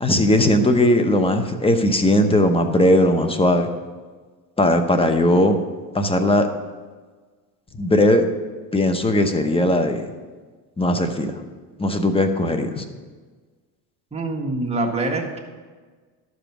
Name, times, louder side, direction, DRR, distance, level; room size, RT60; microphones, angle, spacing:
voice 1, 0.0-3.7 4.6-5.6 5.9-6.5 7.8-8.3 8.7-10.1 10.8-11.3 11.8-12.8, left 1 dB, 10° left, 7 dB, 0.9 m, -18 dB
voice 2, 14.1-15.4, right 2 dB, 15° right, 0 dB, 1.7 m, -25 dB
12.5 x 5.1 x 6.0 m, 1.4 s
supercardioid pair, 105°, 46 cm